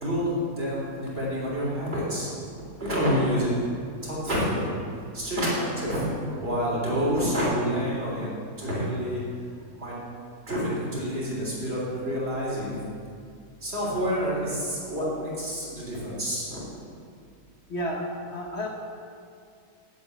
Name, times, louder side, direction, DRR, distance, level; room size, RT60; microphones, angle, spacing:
voice 1, 0.0-2.3 2.8-3.5 4.0-4.7 5.1-6.1 6.4-8.3 8.6-9.2 9.8-9.9 10.5-12.8 13.6-16.7, equal, 40° right, -6 dB, 3.7 m, -28 dB
voice 2, 17.7-18.7, equal, 45° left, -1 dB, 1.2 m, -34 dB
9.2 x 8.0 x 8.3 m, 2.3 s
omnidirectional pair, 1.7 m